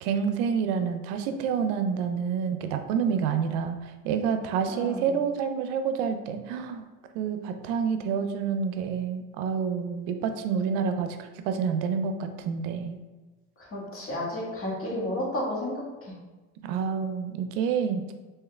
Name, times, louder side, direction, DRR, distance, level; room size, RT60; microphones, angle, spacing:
voice 1, 0.0-6.8 7.1-13.0 16.6-18.1, right 6 dB, 90° right, 7 dB, 0.5 m, -28 dB
voice 2, 4.7-5.1 13.6-16.1, left 1 dB, 40° left, -5 dB, 1.5 m, -32 dB
3.6 x 2.8 x 3.3 m, 1.2 s
supercardioid pair, 95°, 34 cm